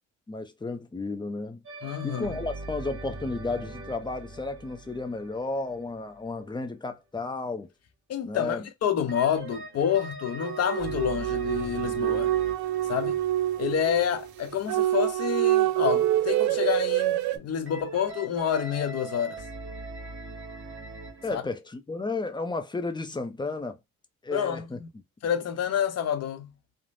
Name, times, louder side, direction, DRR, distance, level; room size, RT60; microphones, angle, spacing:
voice 1, 0.3-1.6 2.0-7.7 8.2-8.6 21.2-23.8 24.2-24.8, left 3 dB, 15° left, 0.6 m, -33 dB
sound 1, 1.6-6.6 9.1-15.1 17.6-21.4, right 2 dB, 45° right, 1.2 m, -42 dB
voice 2, 1.8-2.4 8.1-12.3 12.9-13.2 13.6-19.4 21.3-21.4 24.3-24.9 25.2-26.5, left 9 dB, 55° left, 0.7 m, -28 dB
sound 2, 10.4-17.4, right 14 dB, 75° right, 0.5 m, -26 dB
3.2 x 2.1 x 2.5 m
cardioid pair, 90°, 30 cm